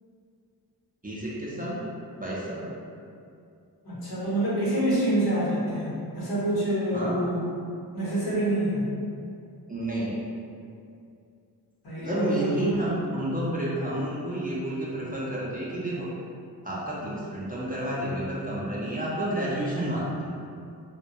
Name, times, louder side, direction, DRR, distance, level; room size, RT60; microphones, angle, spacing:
voice 1, 1.0-1.8 2.2-2.7 6.9-7.1 9.7-10.2 12.0-16.1 16.6-20.4, right 1 dB, 25° right, -7 dB, 0.4 m, -30 dB
voice 2, 3.8-7.4 7.9-8.8 11.8-12.7, right 1 dB, 65° left, -8 dB, 0.9 m, -27 dB
2.2 x 2.1 x 2.6 m, 2.5 s
wide cardioid pair, 60°, 39 cm